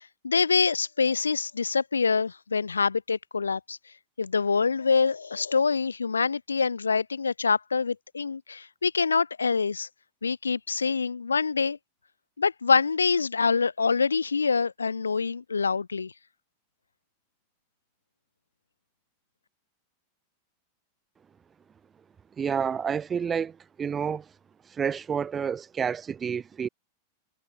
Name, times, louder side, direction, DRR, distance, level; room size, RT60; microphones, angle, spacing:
voice 1, 0.0-3.8 4.2-9.9 10.2-11.8 12.4-16.1, left 5 dB, 75° left, 3.0 m, -25 dB
voice 2, 22.4-24.2 24.7-26.7, right 7 dB, 20° right, 5.5 m, -29 dB
figure-of-eight pair, 90°, 0 cm